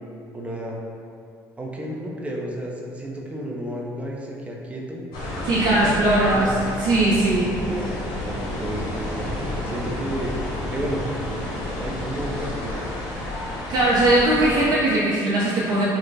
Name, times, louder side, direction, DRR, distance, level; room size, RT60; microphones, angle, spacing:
voice 1, 0.3-0.8 1.6-5.0 5.6-6.0 6.3-6.6 7.4-9.2 9.6-10.4 10.7-11.0 11.7-13.1, right 1 dB, 15° right, -2 dB, 0.6 m, -32 dB
sound 1, 5.1-14.7, left 1 dB, 75° left, 0.8 m, -30 dB
voice 2, 5.4-6.5 6.8-7.5 13.7-15.8, right 1 dB, 60° right, -7 dB, 0.5 m, -19 dB
3.1 x 2.1 x 4.0 m, 2.5 s
supercardioid pair, 85°, 8 cm